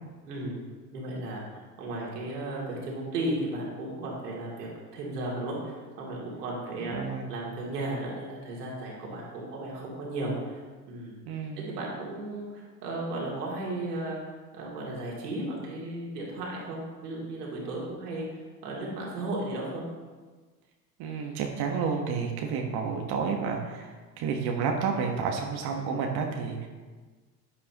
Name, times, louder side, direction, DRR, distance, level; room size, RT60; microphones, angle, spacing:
voice 1, 0.2-0.6 0.9-7.0 7.3-11.2 11.6-14.2 14.5-19.8, right 1 dB, 85° right, -4 dB, 2.9 m, -35 dB
voice 2, 6.9-7.3 11.3-11.7 21.0-26.7, right 5 dB, 55° right, 2 dB, 1.4 m, -30 dB
10.0 x 9.9 x 3.0 m, 1.4 s
hypercardioid pair, 75°, 47 cm